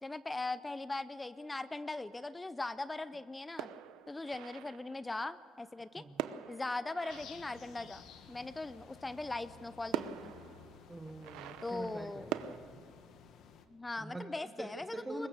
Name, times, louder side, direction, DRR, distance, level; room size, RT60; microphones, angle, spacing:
voice 1, 0.0-3.7 4.1-6.0 6.5-8.0 8.3-10.3 11.6-12.4 13.7-15.3, left 2 dB, 10° left, 15 dB, 0.5 m, -40 dB
sound 1, 3.6-5.1 6.2-8.1 9.3-9.4 9.9-12.6, right 11 dB, 90° right, 0.8 m, -43 dB
sound 2, 7.1-13.7, left 7 dB, 60° left, 1.6 m, -55 dB
voice 2, 10.9-12.8 14.0-15.3, right 2 dB, 10° right, 3 dB, 1.2 m, -45 dB
22.5 x 20.5 x 6.6 m, 2.4 s
cardioid pair, 155°, 0 cm